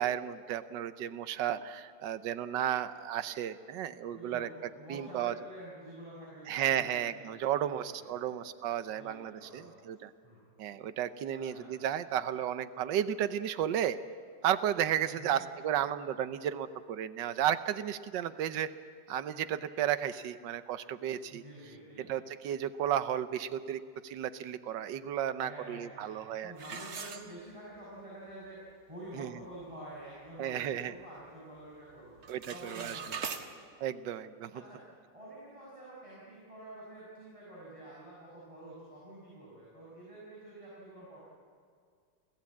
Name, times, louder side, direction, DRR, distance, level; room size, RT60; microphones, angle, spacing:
voice 1, 0.0-4.5 4.9-5.3 6.5-10.1 10.6-14.0 14.4-18.7 19.1-21.4 22.1-26.5 29.1-29.3 30.4-30.9 32.3-33.0 33.8-34.5, right 10 dB, 75° right, 12 dB, 1.5 m, -33 dB
voice 2, 4.1-8.3 8.9-9.8 10.2-10.4 11.3-12.1 15.0-15.5 21.3-22.1 25.4-28.6 28.9-32.2 32.5-33.6 34.5-34.8 35.1-41.2, right 1 dB, 15° right, -7 dB, 6.1 m, -49 dB
sound 1, 26.6-27.8 28.3-28.4 28.9-29.0 29.4-29.7 30.2-31.3 31.6-31.9 32.2-33.4, right 6 dB, 55° right, 1.8 m, -42 dB
29.5 x 15.5 x 8.6 m, 2.1 s
omnidirectional pair, 2.0 m